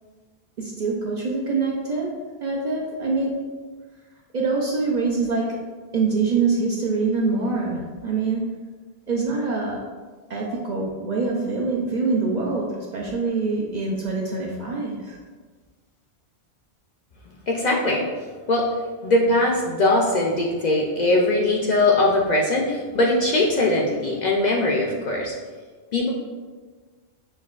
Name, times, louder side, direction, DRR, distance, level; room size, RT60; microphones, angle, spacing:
voice 1, 0.6-3.5 4.3-5.6 5.9-8.6 9.1-9.8 10.3-15.2, right 4 dB, 55° right, -3 dB, 0.5 m, -25 dB
voice 2, 17.5-18.0 18.5-18.7 19.0-25.3 25.9-26.1, left 2 dB, 55° left, -2 dB, 0.5 m, -21 dB
6.2 x 2.2 x 2.3 m, 1.4 s
omnidirectional pair, 1.1 m